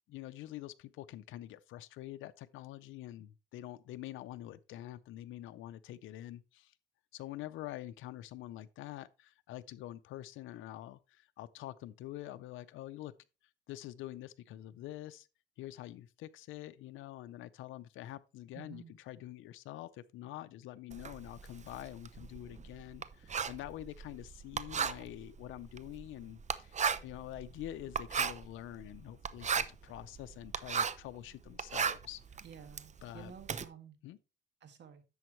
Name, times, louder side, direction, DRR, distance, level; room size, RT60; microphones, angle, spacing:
voice 1, 0.1-6.7 7.1-13.1 13.7-15.3 15.6-32.4 33.0-33.3 34.0-34.2, left 14 dB, 90° left, 0.6 m, -46 dB
voice 2, 18.5-19.0 32.4-34.0 34.6-35.0, right 7 dB, 60° right, 1.9 m, -52 dB
Writing, 20.9-31.1 31.5-33.6, right 6 dB, 35° right, 0.7 m, -36 dB
10.5 x 7.1 x 3.1 m
cardioid pair, 90°, 20 cm